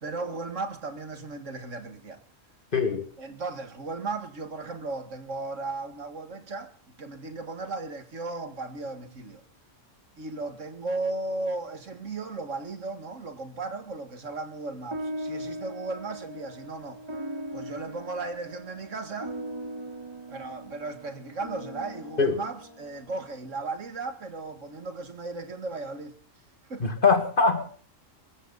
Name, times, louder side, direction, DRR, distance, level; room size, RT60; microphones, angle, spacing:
voice 1, 0.0-2.2 3.2-9.4 10.2-17.0 17.5-19.4 20.3-26.2 26.7-26.9, right 3 dB, 70° right, 2.2 m, -36 dB
voice 2, 2.7-3.1 22.2-22.4 26.8-27.7, left 4 dB, 40° left, 2.1 m, -22 dB
sound 1, 14.9-23.6, right 1 dB, 20° right, 3.6 m, -39 dB
21.5 x 15.0 x 4.0 m
omnidirectional pair, 1.3 m